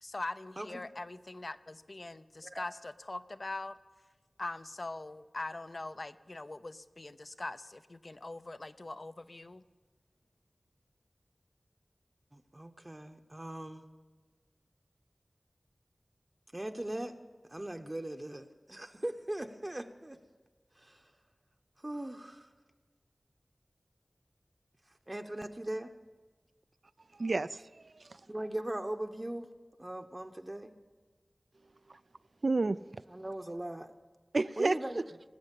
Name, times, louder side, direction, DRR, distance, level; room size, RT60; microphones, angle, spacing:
voice 1, 0.0-3.8 4.4-9.6, left 2 dB, 55° left, 12 dB, 0.5 m, -42 dB
voice 2, 12.3-13.9 16.5-17.1 17.5-20.2 20.7-21.1 21.8-22.5 24.9-25.9 28.3-29.5 29.8-30.7 33.1-33.9 34.6-35.0, right 1 dB, 30° right, 5 dB, 0.8 m, -39 dB
voice 3, 27.1-28.2 31.9-32.0 32.4-33.0 34.3-34.8, right 3 dB, 70° right, 17 dB, 0.4 m, -31 dB
19.5 x 7.6 x 8.3 m, 1.4 s
wide cardioid pair, 50°, 0 cm